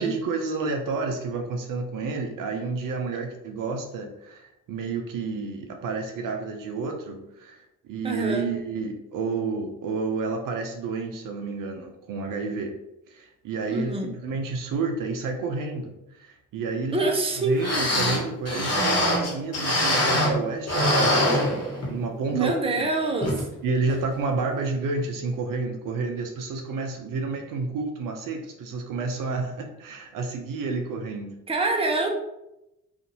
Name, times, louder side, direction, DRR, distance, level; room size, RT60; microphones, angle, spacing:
voice 1, 0.0-7.6 7.8-12.8 13.1-17.0 17.4-22.9 23.6-31.4, right 4 dB, 60° right, 4 dB, 0.5 m, -30 dB
voice 2, 8.0-8.5 13.7-14.1 16.9-17.5 22.3-23.4 31.5-32.1, right 3 dB, 15° right, 2 dB, 0.6 m, -25 dB
sound 1, 17.3-17.4 17.6-20.4 20.7-22.0 22.4-22.5 23.2-23.4 23.9-24.0, left 1 dB, 40° left, 1.2 m, -23 dB
2.6 x 2.5 x 2.8 m, 0.89 s
hypercardioid pair, 40°, 37 cm